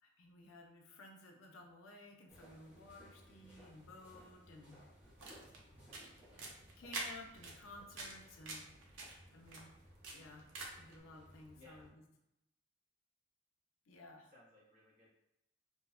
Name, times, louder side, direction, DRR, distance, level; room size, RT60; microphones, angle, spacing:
voice 1, 0.0-4.8 6.8-8.7 9.3-9.7 10.1-10.5 10.8-12.0 13.9-14.3, left 2 dB, 90° left, 2 dB, 0.4 m, -55 dB
sound 1, 2.3-11.9, equal, 10° right, 0.6 m, -62 dB
sound 2, 5.0-11.0, right 2 dB, 80° right, 0.5 m, -48 dB
voice 2, 5.9-6.4 11.5-11.9 14.3-15.1, left 1 dB, 40° right, -7 dB, 0.9 m, -63 dB
2.6 x 2.0 x 2.3 m, 0.87 s
head